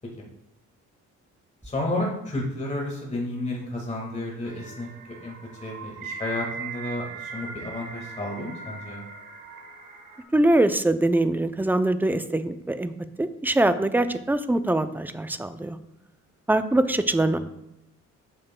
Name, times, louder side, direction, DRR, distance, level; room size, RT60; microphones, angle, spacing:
voice 1, 1.6-4.9 5.2-9.0 17.2-17.4, left 1 dB, 25° left, -2 dB, 1.8 m, -31 dB
sound 1, 4.5-10.2, right 4 dB, 80° right, 1.4 m, -39 dB
voice 2, 10.3-12.9 13.2-15.8 16.5-17.4, right 1 dB, 5° right, 10 dB, 0.4 m, -23 dB
8.7 x 6.6 x 2.2 m, 0.83 s
cardioid pair, 90°, 30 cm